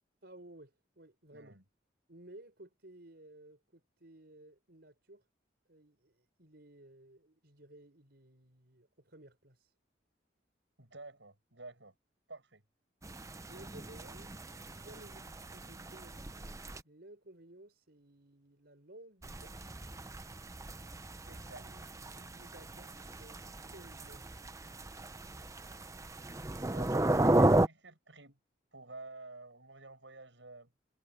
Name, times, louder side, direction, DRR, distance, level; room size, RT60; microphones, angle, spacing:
voice 1, 0.2-1.6 2.1-5.3 5.7-9.7 13.5-16.5 16.8-19.7 21.3-23.4 23.7-24.5, right 1 dB, 60° right, 6.1 m, -56 dB
voice 2, 1.3-1.6 10.8-11.9 12.3-12.6 21.3-21.6 26.5-28.4 28.7-30.7, right 3 dB, 85° right, 7.3 m, -51 dB
sound 1, 13.0-16.8 19.2-27.7, right 1 dB, 15° right, 0.6 m, -34 dB
head